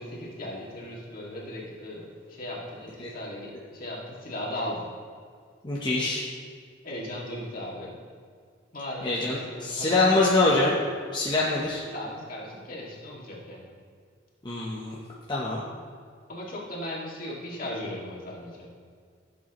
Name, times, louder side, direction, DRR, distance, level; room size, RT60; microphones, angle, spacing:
voice 1, 0.0-4.8 6.8-7.9 8.7-10.6 11.8-13.7 16.3-18.7, left 1 dB, 50° left, -4 dB, 2.3 m, -37 dB
voice 2, 5.6-6.2 9.0-10.7 11.1-11.8 14.4-14.9 15.3-15.6, left 2 dB, 25° left, -5 dB, 1.0 m, -24 dB
15.5 x 7.6 x 3.1 m, 2.1 s
head